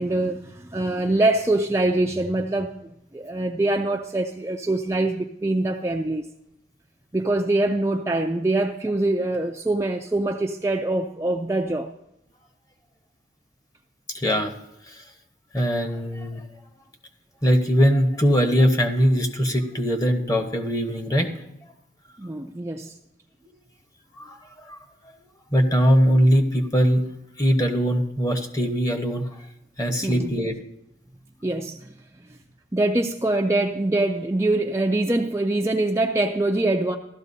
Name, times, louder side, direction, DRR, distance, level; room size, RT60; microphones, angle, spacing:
voice 1, 0.0-6.3 7.1-11.9 22.2-22.9 30.0-30.3 31.4-31.9 32.7-37.0, right 2 dB, 15° right, 0.4 m, -24 dB
voice 2, 14.1-14.5 14.9-15.0 15.5-16.4 17.4-21.5 24.2-24.8 25.5-27.1 27.4-29.4 29.8-30.6, equal, 20° left, 1.0 m, -21 dB
15.0 x 12.5 x 2.7 m
head